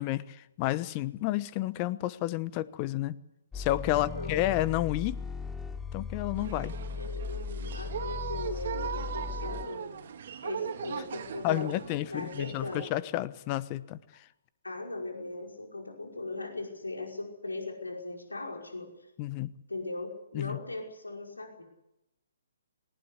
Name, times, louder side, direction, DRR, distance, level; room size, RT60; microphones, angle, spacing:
voice 1, 0.0-3.2 3.5-5.2 5.9-6.7 11.4-14.0 19.2-19.5 20.3-20.6, left 15 dB, 30° left, 17 dB, 1.1 m, -30 dB
sound 1, 3.5-9.6, left 5 dB, 10° left, 1.2 m, -38 dB
voice 2, 3.8-4.5 6.8-9.9 10.4-12.8 14.6-18.9 19.7-21.6, left 2 dB, 90° left, 2 dB, 5.4 m, -39 dB
sound 2, 6.4-12.9, right 8 dB, 55° right, 2.2 m, -39 dB
19.5 x 18.0 x 9.8 m, 0.88 s
figure-of-eight pair, 135°, 0 cm